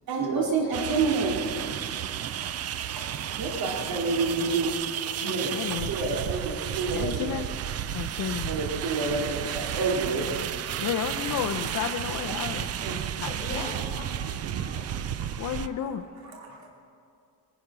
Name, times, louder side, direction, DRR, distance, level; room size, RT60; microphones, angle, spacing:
voice 1, 0.1-1.9 2.4-5.6 5.9-7.4 8.5-10.4 11.1-11.2 11.7-11.8 12.3-13.2 14.9-15.7 16.2-16.7, right 3 dB, 65° right, -1 dB, 2.9 m, -30 dB
sound 1, 0.7-15.7, right 10 dB, 40° right, 0.4 m, -32 dB
voice 2, 5.2-5.9 6.9-7.4 7.9-8.5 10.8-13.6 15.4-16.0, left 9 dB, 50° left, 7 dB, 0.6 m, -32 dB
voice 3, 13.3-14.8, left 2 dB, 15° left, -6 dB, 5.2 m, -40 dB
21.0 x 10.0 x 6.1 m, 2.4 s
cardioid pair, 175°, 38 cm